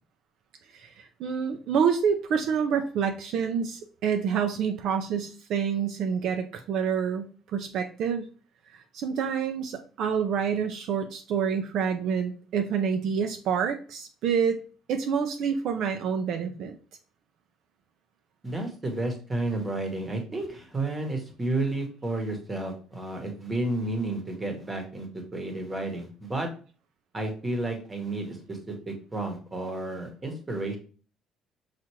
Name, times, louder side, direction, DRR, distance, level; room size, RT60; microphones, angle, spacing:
voice 1, 0.7-8.3 8.7-14.6 14.9-16.8, right 7 dB, 60° right, 6 dB, 0.4 m, -27 dB
voice 2, 18.4-26.5 27.1-30.8, right 2 dB, 15° right, 3 dB, 1.0 m, -31 dB
5.7 x 2.4 x 3.0 m, 0.39 s
cardioid pair, 150°, 0 cm